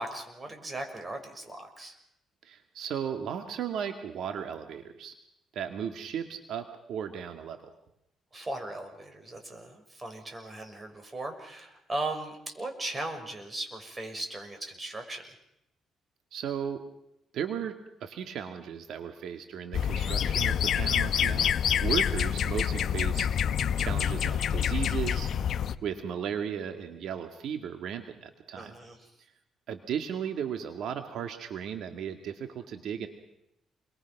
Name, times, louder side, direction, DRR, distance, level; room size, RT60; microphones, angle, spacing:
voice 1, 0.0-2.0 8.3-15.3 28.5-29.1, right 2 dB, 25° right, 5 dB, 6.2 m, -38 dB
voice 2, 2.4-5.1 5.5-7.7 16.3-16.9 17.3-21.6 21.8-23.3 23.8-25.3 25.8-28.8 29.7-33.1, right 8 dB, 75° right, 6 dB, 2.1 m, -35 dB
sound 1, 19.7-25.8, left 8 dB, 65° left, 1.1 m, -27 dB
28.5 x 23.0 x 6.1 m, 0.83 s
cardioid pair, 90°, 0 cm